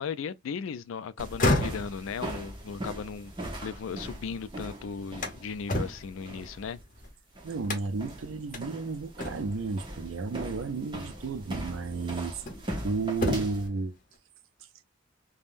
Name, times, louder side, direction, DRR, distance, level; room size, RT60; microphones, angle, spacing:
voice 1, 0.0-3.3 3.6-6.8, left 6 dB, 75° left, 0.4 m, -36 dB
sound 1, 1.2-4.3 4.7-7.1 7.6-8.1 8.5-8.7 9.2-9.7 10.9-11.1 11.7-12.8 13.1-13.7, left 1 dB, 45° left, 0.8 m, -32 dB
sound 2, 1.2-13.7, right 1 dB, 25° right, 0.9 m, -40 dB
voice 2, 7.4-12.3 12.8-14.0, right 4 dB, 75° right, 0.4 m, -32 dB
3.4 x 2.2 x 2.5 m
head